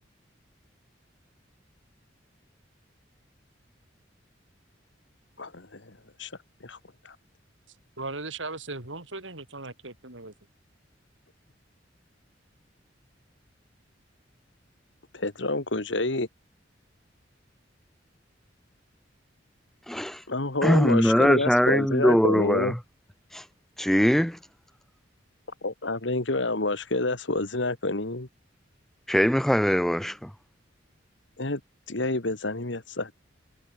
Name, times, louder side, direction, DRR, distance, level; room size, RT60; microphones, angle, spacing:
voice 1, 5.4-5.9 6.2-6.3 6.6-6.8 7.0-7.2 15.1-16.3 20.3-22.7 25.6-28.3 31.4-31.6 31.9-33.2, left 2 dB, 70° left, 2.2 m, -28 dB
voice 2, 8.0-10.3, right 3 dB, 75° right, 5.8 m, -37 dB
voice 3, 19.9-20.2 20.6-22.7 23.3-23.4 23.8-24.4 29.1-30.3, equal, ahead, 0.5 m, -22 dB
head